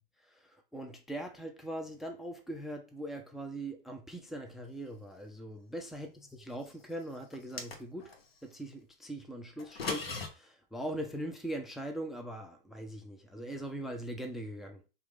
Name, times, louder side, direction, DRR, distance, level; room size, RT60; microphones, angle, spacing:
voice 1, 0.2-8.1 8.4-14.8, right 1 dB, ahead, 0.3 m, -41 dB
sound 1, 7.3-8.2 9.6-10.3, left 4 dB, 85° left, 1.0 m, -37 dB
4.6 x 2.6 x 3.5 m
hypercardioid pair, 115°, 29 cm